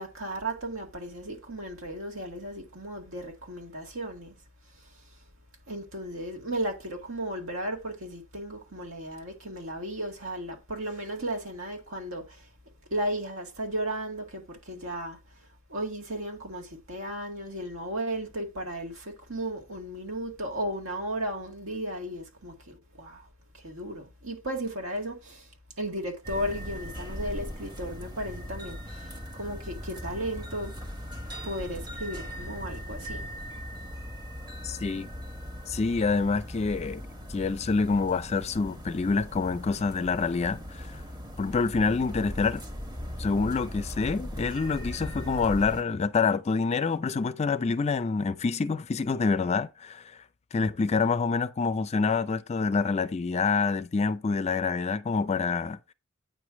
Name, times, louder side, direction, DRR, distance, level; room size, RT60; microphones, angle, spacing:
voice 1, 0.0-4.3 5.7-12.5 12.9-15.2 15.7-23.2 23.5-25.4 25.8-29.1 29.3-30.7 31.4-33.3, right 1 dB, 75° right, 1.8 m, -35 dB
sound 1, 26.2-45.8, equal, 20° right, 1.4 m, -39 dB
voice 2, 34.6-35.1 35.7-37.0 37.3-41.0 41.4-42.6 43.2-50.2 50.5-55.8, left 4 dB, 30° left, 0.4 m, -27 dB
9.0 x 3.1 x 6.1 m
head